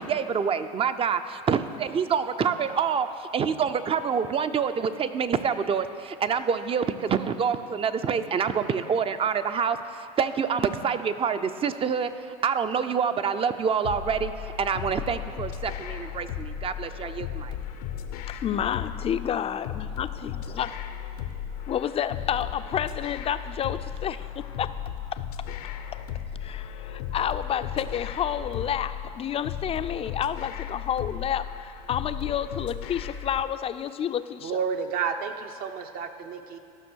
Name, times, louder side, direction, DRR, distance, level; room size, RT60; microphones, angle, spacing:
voice 1, 0.0-17.5, right 6 dB, 30° right, 11 dB, 0.6 m, -27 dB
sound 1, 13.8-33.4, left 9 dB, 80° left, 0.7 m, -36 dB
voice 2, 18.3-20.7 21.7-24.7 25.9-26.0 26.4-34.6, left 9 dB, 30° left, 12 dB, 0.4 m, -30 dB
voice 3, 34.4-36.6, right 6 dB, 50° right, 7 dB, 0.9 m, -30 dB
13.0 x 6.0 x 6.3 m, 2.4 s
hypercardioid pair, 90°, 19 cm